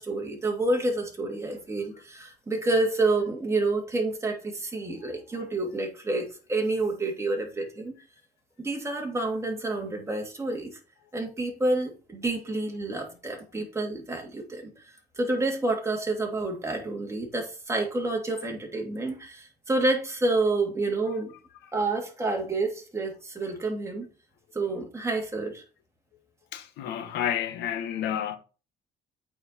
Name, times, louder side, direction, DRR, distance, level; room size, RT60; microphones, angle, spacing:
voice 1, 0.0-7.9 8.6-10.8 11.1-14.8 15.2-21.3 21.7-24.1 24.5-25.6, right 2 dB, 15° right, 2.8 m, -29 dB
voice 2, 26.5-28.4, left 9 dB, 85° left, 1.4 m, -30 dB
8.5 x 5.0 x 4.4 m
cardioid pair, 110°, 17 cm